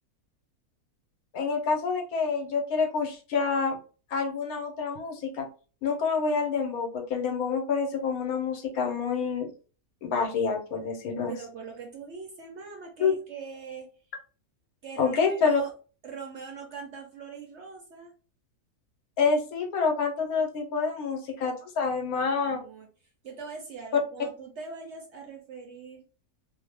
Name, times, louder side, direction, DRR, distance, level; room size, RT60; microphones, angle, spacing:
voice 1, 1.3-3.8 4.1-5.5 5.8-9.5 10.0-11.3 13.0-13.1 15.0-15.6 19.2-22.6, left 5 dB, 75° left, 3 dB, 1.2 m, -27 dB
voice 2, 11.3-13.9 14.8-15.7 16.0-18.1 21.8-22.9 23.2-26.0, right 5 dB, 65° right, 2 dB, 0.7 m, -42 dB
2.7 x 2.1 x 3.2 m, 0.37 s
omnidirectional pair, 1.6 m